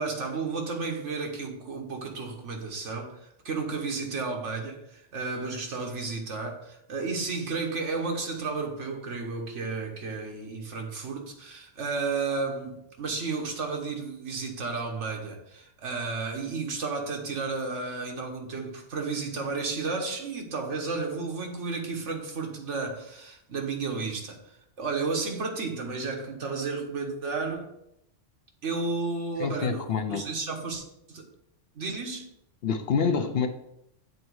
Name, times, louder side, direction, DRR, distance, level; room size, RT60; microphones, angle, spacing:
voice 1, 0.0-24.4 24.8-27.7 28.6-31.3 31.7-32.2, right 4 dB, 70° right, 1.5 m, -32 dB
voice 2, 29.4-30.3 32.6-33.5, left 6 dB, 60° left, 0.8 m, -27 dB
7.8 x 4.0 x 4.7 m
omnidirectional pair, 1.3 m